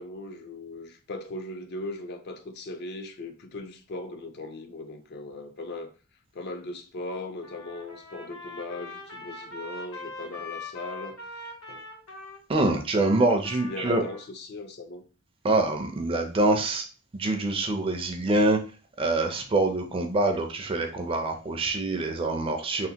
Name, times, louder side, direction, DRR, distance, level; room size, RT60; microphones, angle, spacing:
voice 1, 0.0-5.9 6.3-11.2 11.7-11.8 13.2-13.3 13.6-15.0, left 2 dB, 50° left, 0.4 m, -38 dB
Trumpet, 7.4-14.3, left 2 dB, 85° left, 0.9 m, -42 dB
voice 2, 12.5-14.0 15.4-16.8 17.1-18.6 19.0-22.9, right 2 dB, 25° right, 0.4 m, -25 dB
3.3 x 2.1 x 2.8 m
head